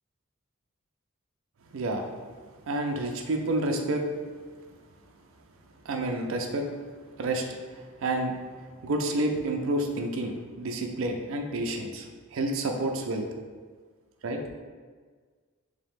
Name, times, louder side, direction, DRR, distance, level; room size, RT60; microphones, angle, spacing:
voice 1, 1.7-2.1 2.7-4.0 5.9-6.7 7.2-7.4 8.0-8.3 8.8-12.0 12.3-13.3 14.2-14.4, right 2 dB, 70° right, 3 dB, 0.4 m, -29 dB
3.4 x 2.8 x 3.5 m, 1.5 s
head